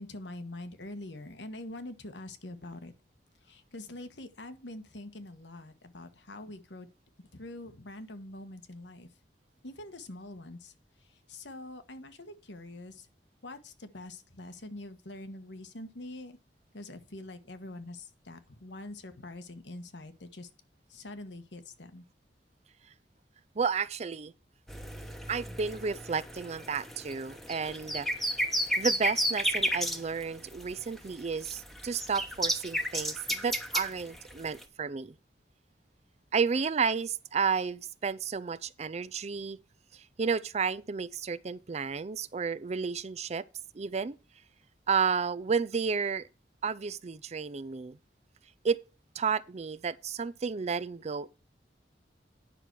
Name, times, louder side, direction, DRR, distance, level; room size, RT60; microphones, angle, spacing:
voice 1, 0.0-2.9 3.4-6.9 7.2-9.1 9.6-10.7 11.0-13.1 13.4-16.4 16.7-20.5 20.9-22.0, left 2 dB, 80° left, 1.4 m, -44 dB
voice 2, 23.6-24.3 25.3-28.4 28.8-35.1 36.3-39.6 39.9-43.4 43.7-44.2 44.9-46.3 46.6-48.0 48.6-48.8 49.2-51.3, right 5 dB, 40° right, 0.5 m, -32 dB
sound 1, 24.7-34.6, equal, ahead, 1.1 m, -33 dB
9.9 x 5.9 x 4.6 m
head